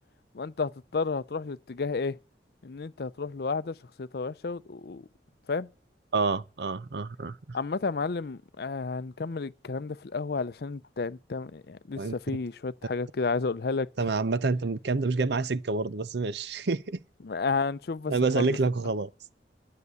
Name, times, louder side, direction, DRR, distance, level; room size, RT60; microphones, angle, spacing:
voice 1, 0.3-2.2 2.6-5.1 5.5-5.7 7.5-13.9 17.2-18.5, left 4 dB, 60° left, 0.5 m, -32 dB
voice 2, 6.1-7.6 12.0-12.1 14.0-17.0 18.1-19.1, right 3 dB, 65° right, 0.6 m, -28 dB
12.0 x 6.7 x 8.2 m
head